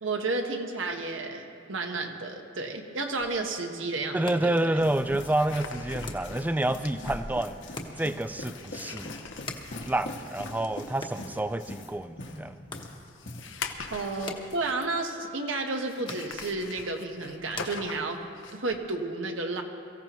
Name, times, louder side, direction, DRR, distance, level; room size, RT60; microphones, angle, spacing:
voice 1, 0.0-4.8 13.9-18.2 18.5-19.6, right 3 dB, 90° right, 3 dB, 1.3 m, -32 dB
sound 1, 3.2-3.3 4.7-15.1 15.8-18.8, left 4 dB, 85° left, 0.9 m, -43 dB
sound 2, 4.0-18.5, left 2 dB, 25° left, 1.0 m, -47 dB
voice 2, 4.1-7.6 8.0-9.1 9.8-12.5, right 1 dB, 10° right, 12 dB, 0.3 m, -28 dB
sound 3, 4.4-14.1 14.4-14.8, left 2 dB, 70° left, 1.4 m, -43 dB
22.5 x 15.0 x 3.1 m, 2.5 s
head